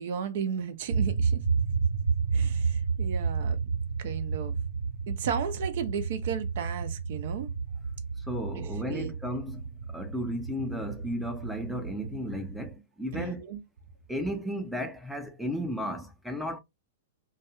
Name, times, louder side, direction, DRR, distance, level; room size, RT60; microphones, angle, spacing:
voice 1, 0.0-1.4 2.3-3.6 4.0-4.5 5.1-7.5 8.6-9.1 13.1-13.6, right 7 dB, 60° right, 0.5 m, -34 dB
sound 1, 0.9-12.7, right 5 dB, 80° right, 0.8 m, -31 dB
voice 2, 8.2-13.4 14.1-16.6, equal, ahead, 0.4 m, -34 dB
2.3 x 2.2 x 2.8 m
hypercardioid pair, 125°, 0 cm